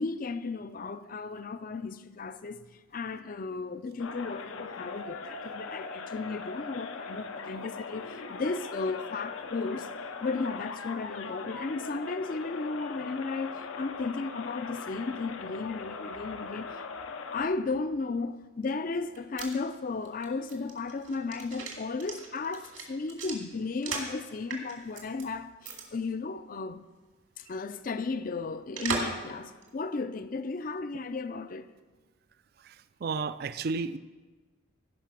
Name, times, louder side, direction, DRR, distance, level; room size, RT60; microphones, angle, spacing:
voice 1, 0.0-2.6 2.9-9.9 10.2-16.8 17.3-26.8 27.4-31.7, left 3 dB, 40° left, 0.4 m, -34 dB
sound 1, 4.0-17.5, left 4 dB, 80° left, 0.7 m, -40 dB
sound 2, 19.0-24.2 24.5-25.2 25.6-25.8 26.1-26.2 28.8-29.2 29.6-29.7, right 5 dB, 75° right, 2.3 m, -37 dB
voice 2, 33.0-34.0, right 4 dB, 50° right, 0.4 m, -32 dB
15.0 x 5.6 x 6.1 m
head